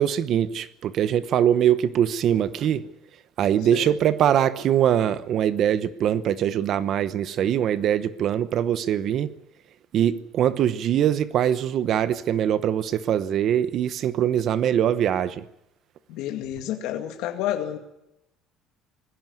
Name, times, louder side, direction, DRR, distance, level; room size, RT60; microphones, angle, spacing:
voice 1, 0.0-2.9 3.4-9.3 9.9-15.4, right 10 dB, 45° right, 0.9 m, -22 dB
voice 2, 16.1-17.8, left 12 dB, 75° left, 2.1 m, -29 dB
20.0 x 16.0 x 9.5 m
cardioid pair, 150°, 0 cm